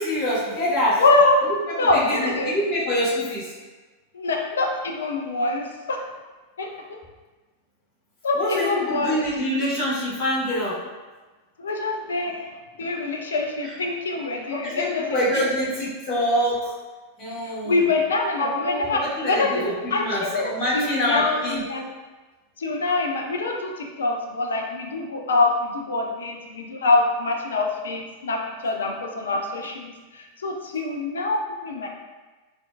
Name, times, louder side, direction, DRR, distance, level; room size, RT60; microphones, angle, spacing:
voice 1, 0.0-1.0 1.8-3.5 8.3-10.8 13.6-13.7 14.5-16.7 17.2-17.9 18.4-21.6, equal, 30° left, -9 dB, 1.4 m, -25 dB
voice 2, 1.0-1.5 1.7-2.6 4.1-6.0 6.6-7.0 8.2-9.2 11.6-12.5 12.8-15.0 15.3-15.5 17.4-19.6 19.9-21.9 22.6-31.9, left 3 dB, 65° left, 2 dB, 0.4 m, -24 dB
4.2 x 2.5 x 2.3 m, 1.3 s
figure-of-eight pair, 90°, 0 cm